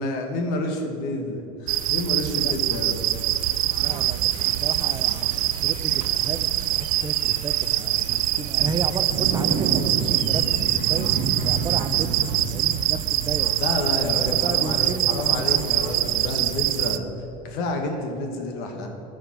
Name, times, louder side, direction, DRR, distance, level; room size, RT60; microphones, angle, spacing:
voice 1, 0.0-3.0 13.6-17.1 17.4-18.9, left 2 dB, 70° left, 4 dB, 1.6 m, -29 dB
sound 1, 1.7-17.0, right 14 dB, 90° right, 0.5 m, -24 dB
voice 2, 3.7-11.1 11.4-13.5 14.2-15.7, right 5 dB, 25° right, 11 dB, 0.6 m, -34 dB
sound 2, 8.6-16.3 16.6-16.8 17.2-17.3, right 4 dB, 60° right, 1.1 m, -31 dB
13.0 x 5.1 x 6.2 m, 2.7 s
supercardioid pair, 120°, 17 cm